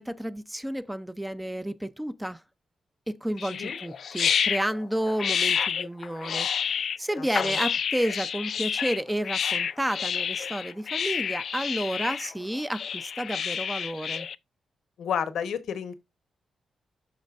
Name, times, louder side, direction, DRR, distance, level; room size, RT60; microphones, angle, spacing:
voice 1, 0.0-2.4 3.1-6.7 7.0-14.3, equal, 5° right, 0.4 m, -31 dB
sound 1, 3.4-14.3, left 7 dB, 65° left, 0.3 m, -29 dB
voice 2, 7.2-7.6 15.0-15.9, left 8 dB, 90° left, 1.0 m, -31 dB
12.5 x 4.3 x 2.4 m
wide cardioid pair, 120°, 0 cm